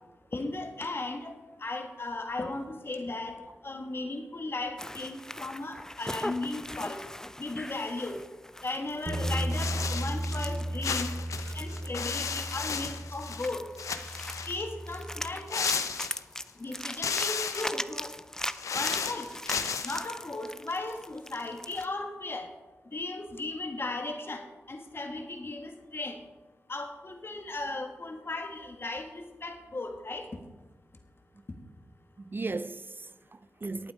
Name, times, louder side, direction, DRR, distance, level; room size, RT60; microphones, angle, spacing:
voice 1, 0.3-3.4 3.6-7.0 7.4-8.2 8.6-11.1 11.5-13.6 14.5-15.7 16.6-18.1 18.7-19.3 19.8-22.5 22.9-26.2 26.7-30.2, left 2 dB, 45° left, 1.8 m, -36 dB
sound 1, 4.8-21.9, left 1 dB, 10° left, 0.6 m, -41 dB
sound 2, 9.1-15.3, right 1 dB, 25° right, 1.2 m, -35 dB
sound 3, 9.5-10.5 10.8-13.5 13.8-14.6 15.5-16.5 16.9-17.8 18.4-20.0, left 6 dB, 80° left, 0.7 m, -33 dB
voice 2, 11.5-11.9 32.2-33.9, right 3 dB, 40° right, 0.5 m, -38 dB
11.5 x 8.9 x 5.0 m
cardioid pair, 40°, 5 cm